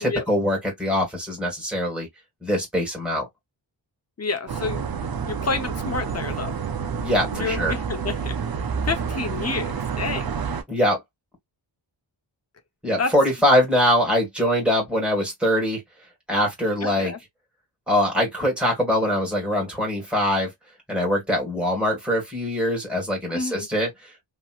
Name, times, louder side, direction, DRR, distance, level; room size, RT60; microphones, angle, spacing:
voice 1, 0.0-2.1 2.4-3.3 6.9-7.7 10.7-11.0 12.8-15.8 16.3-17.1 17.9-20.5 20.9-24.1, equal, ahead, 1.8 m, -23 dB
voice 2, 4.2-4.8 5.3-6.5 7.3-8.3 8.9-10.3 13.0-13.1 16.8-17.2 23.3-23.7, left 4 dB, 35° left, 0.8 m, -29 dB
sound 1, 4.5-10.6, right 6 dB, 50° right, 0.6 m, -29 dB
3.1 x 2.8 x 2.4 m
wide cardioid pair, 80°, 47 cm